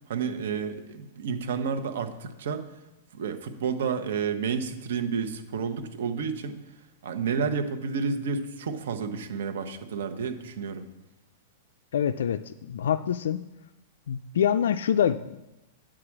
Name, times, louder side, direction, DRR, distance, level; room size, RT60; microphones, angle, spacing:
voice 1, 0.1-2.7 3.1-6.6 7.0-10.9, right 6 dB, 70° right, 8 dB, 1.0 m, -30 dB
voice 2, 11.9-13.4 14.1-15.4, left 9 dB, 85° left, 11 dB, 0.3 m, -25 dB
9.1 x 4.9 x 7.3 m, 0.95 s
supercardioid pair, 160°, 0 cm